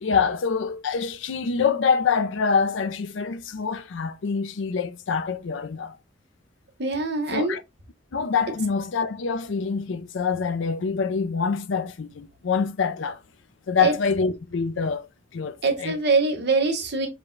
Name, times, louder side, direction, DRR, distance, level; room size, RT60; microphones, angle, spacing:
voice 1, 0.0-6.0 7.3-7.6 8.1-13.2 13.7-16.0, left 5 dB, 80° left, 0.5 m, -25 dB
voice 2, 6.8-7.6 13.8-13.9 15.6-17.1, right 3 dB, 60° right, 1.0 m, -23 dB
4.9 x 2.2 x 3.7 m
head